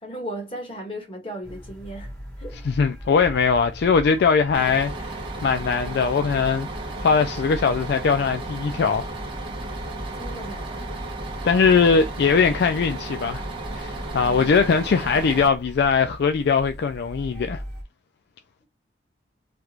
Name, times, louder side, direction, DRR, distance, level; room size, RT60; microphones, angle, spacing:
voice 1, 0.0-2.6 10.1-10.9 14.1-14.5, right 1 dB, 30° left, 1.5 m, -36 dB
sound 1, 1.4-17.8, equal, 5° left, 1.2 m, -39 dB
voice 2, 2.6-6.7 7.0-9.1 11.4-13.4 13.7-17.6, left 5 dB, 60° left, 0.3 m, -21 dB
Bus, 4.5-15.5, right 2 dB, 30° right, 0.8 m, -34 dB
3.4 x 2.4 x 3.0 m
head